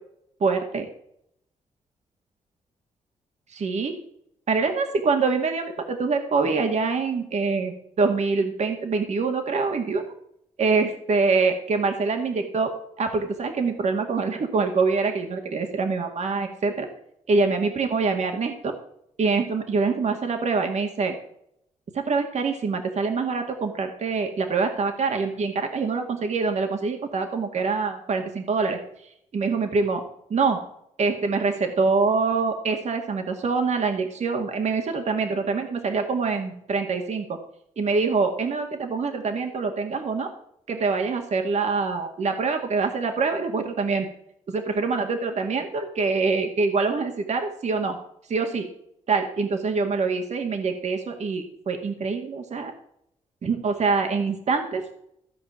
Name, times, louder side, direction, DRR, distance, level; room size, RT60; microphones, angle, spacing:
voice 1, 0.4-0.9 3.5-3.9 4.5-10.1 10.6-12.7 13.0-16.9 17.3-18.7 19.2-21.2 21.9-28.8 29.3-30.0 30.3-30.6 31.0-37.4 37.8-40.3 40.7-44.1 44.5-48.0 48.3-48.7 49.1-52.7 53.4-54.8, right 4 dB, 60° right, 4 dB, 2.1 m, -25 dB
15.5 x 5.2 x 9.0 m, 0.71 s
cardioid pair, 70°, 13 cm